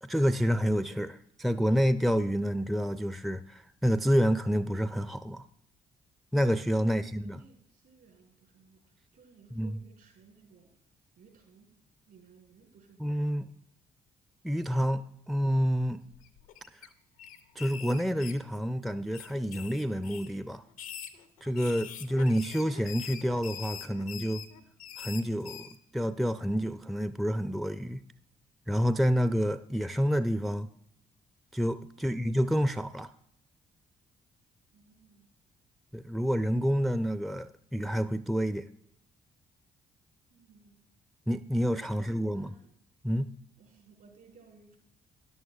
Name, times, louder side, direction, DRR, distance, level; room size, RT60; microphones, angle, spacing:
voice 1, 0.0-5.4 6.3-7.4 9.5-9.8 13.0-13.4 14.4-16.0 16.8-16.9 17.6-20.6 21.4-24.4 25.0-28.0 28.7-30.7 31.5-33.1 35.9-38.7 41.3-42.5 43.0-43.3, equal, ahead, 12 dB, 0.4 m, -28 dB
voice 2, 6.8-10.7 11.2-11.7 12.0-13.6 22.0-22.5 32.0-32.3 34.7-35.3 40.3-40.8 41.8-42.1 42.3-42.7 43.6-44.8, right 5 dB, 65° right, 1 dB, 4.7 m, -60 dB
sound 1, 16.1-16.9 17.2-18.8 19.1-20.3 20.7-25.8, left 9 dB, 85° left, 0.6 m, -44 dB
14.0 x 11.0 x 2.4 m, 0.77 s
figure-of-eight pair, 40°, 18 cm